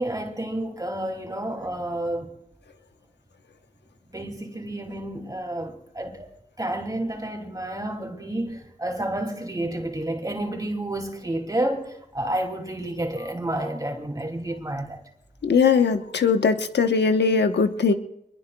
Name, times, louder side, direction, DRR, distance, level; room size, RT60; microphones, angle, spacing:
voice 1, 0.0-2.3 4.1-6.3 6.6-15.0, right 1 dB, 20° right, 2.6 m, -30 dB
voice 2, 15.4-17.9, left 5 dB, 80° left, 1.1 m, -20 dB
24.0 x 21.5 x 2.3 m
cardioid pair, 55°, 17 cm